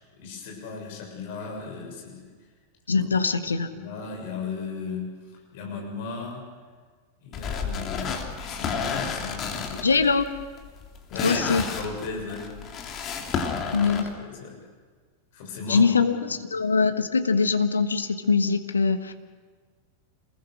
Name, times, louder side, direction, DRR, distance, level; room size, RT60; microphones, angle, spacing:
voice 1, 0.2-2.3 3.4-5.2 5.5-6.4 7.2-9.9 11.1-12.5 13.5-14.6 15.3-15.8 16.2-16.3, left 4 dB, 50° left, 0 dB, 6.6 m, -36 dB
voice 2, 2.9-3.7 9.8-10.3 11.2-11.6 13.7-14.0 15.7-19.1, left 5 dB, 75° left, 8 dB, 1.3 m, -22 dB
sound 1, 7.3-14.1, left 6 dB, 30° left, 3.1 m, -31 dB
27.5 x 21.0 x 6.6 m, 1.5 s
figure-of-eight pair, 90°, 0 cm